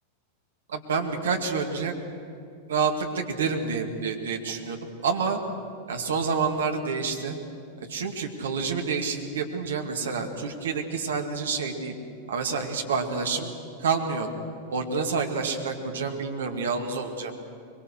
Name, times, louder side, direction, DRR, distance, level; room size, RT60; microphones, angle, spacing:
voice 1, 0.7-2.0 2.7-5.4 5.9-7.4 7.8-11.9 12.3-13.5 13.8-14.3 14.7-17.3, right 5 dB, 65° right, 3 dB, 2.2 m, -28 dB
23.0 x 23.0 x 6.5 m, 2.5 s
figure-of-eight pair, 90°, 0 cm